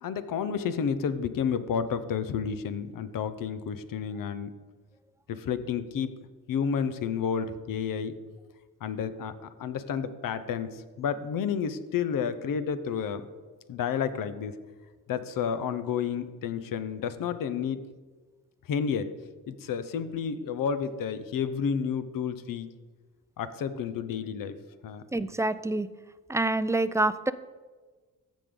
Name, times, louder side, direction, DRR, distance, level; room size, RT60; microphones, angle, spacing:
voice 1, 0.0-4.5 5.3-6.1 6.5-8.1 8.8-13.3 13.7-14.5 15.1-17.8 18.7-19.1 19.5-22.7 23.4-24.5 24.8-25.0, left 7 dB, 80° left, 12 dB, 0.7 m, -31 dB
voice 2, 25.1-25.9 26.3-27.3, right 2 dB, 10° right, 14 dB, 0.3 m, -26 dB
15.0 x 5.2 x 3.8 m, 1.3 s
cardioid pair, 75°, 33 cm